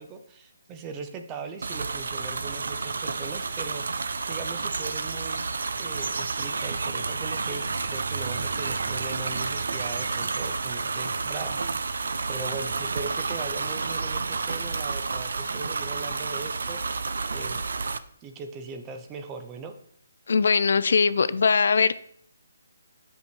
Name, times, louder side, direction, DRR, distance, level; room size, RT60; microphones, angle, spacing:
voice 1, 0.0-5.5 5.8-11.9 12.3-17.6 18.2-19.7, right 4 dB, 15° right, 7 dB, 0.5 m, -39 dB
sound 1, 1.6-18.0, right 4 dB, 70° right, 0.5 m, -30 dB
voice 2, 20.3-22.0, left 5 dB, 60° left, 15 dB, 0.3 m, -21 dB
6.8 x 5.4 x 4.5 m, 0.64 s
hypercardioid pair, 175°, 0 cm